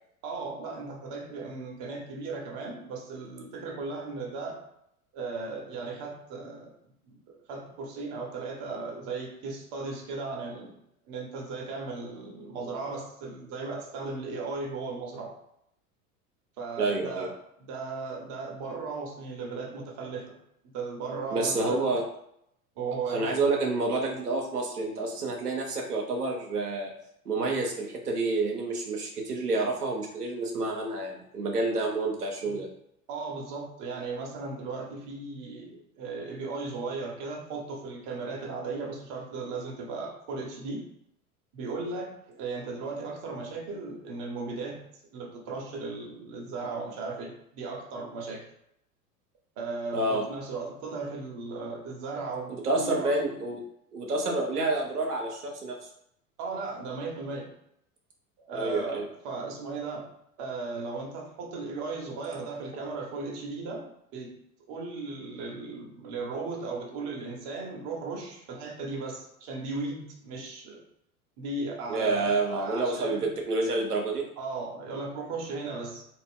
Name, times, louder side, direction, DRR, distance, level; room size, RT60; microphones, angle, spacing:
voice 1, 0.2-4.6 5.1-6.8 7.1-10.8 11.1-15.4 16.6-21.9 22.8-23.3 32.4-32.6 33.1-40.9 41.5-48.5 49.6-53.2 56.4-57.5 58.4-60.1 60.4-64.4 64.7-70.8 71.4-73.3 74.4-76.1, right 3 dB, 35° right, 1 dB, 0.8 m, -36 dB
voice 2, 16.8-17.3 21.3-22.0 23.1-26.9 27.3-32.7 49.9-50.2 52.5-53.6 53.9-55.8 58.5-59.1 71.9-74.3, right 2 dB, 85° right, 0 dB, 0.7 m, -28 dB
2.6 x 2.1 x 3.5 m, 0.75 s
figure-of-eight pair, 85°, 45 cm